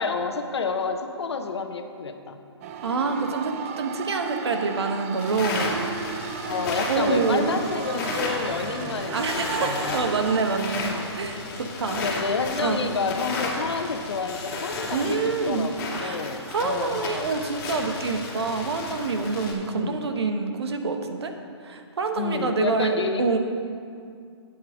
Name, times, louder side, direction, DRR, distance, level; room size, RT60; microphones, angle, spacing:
voice 1, 0.0-2.4 6.4-10.1 10.9-11.1 11.9-17.3 19.6-20.1 22.1-23.4, left 4 dB, 70° left, 6 dB, 1.0 m, -29 dB
sound 1, 2.6-10.6, right 7 dB, 30° right, 0.5 m, -35 dB
voice 2, 2.8-5.7 6.9-7.5 9.1-12.0 12.6-12.9 14.9-15.7 16.0-16.2 16.5-21.3 21.6-23.4, right 4 dB, 65° right, 5 dB, 1.2 m, -26 dB
sound 2, 5.2-19.5, left 3 dB, 35° left, 2.5 m, -33 dB
9.0 x 8.6 x 5.1 m, 2.3 s
figure-of-eight pair, 135°, 15 cm